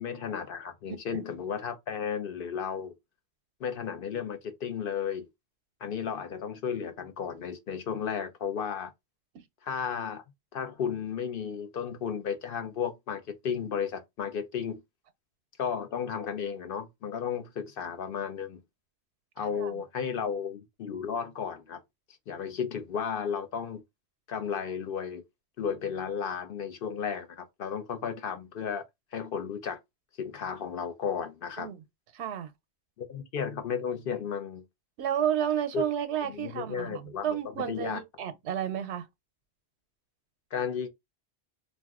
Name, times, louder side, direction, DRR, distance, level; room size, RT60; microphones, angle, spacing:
voice 1, 0.0-2.9 3.6-5.3 5.8-8.9 9.6-10.2 10.5-14.8 15.6-18.6 19.4-21.8 22.3-23.8 24.3-25.2 25.6-28.8 29.1-29.8 30.2-31.7 33.0-34.6 35.7-35.8 36.2-37.4 37.7-38.0 40.5-40.9, left 7 dB, 60° left, 0.7 m, -34 dB
voice 2, 32.1-32.5 35.0-39.1, right 9 dB, 90° right, 0.9 m, -31 dB
2.5 x 2.1 x 3.5 m
omnidirectional pair, 1.1 m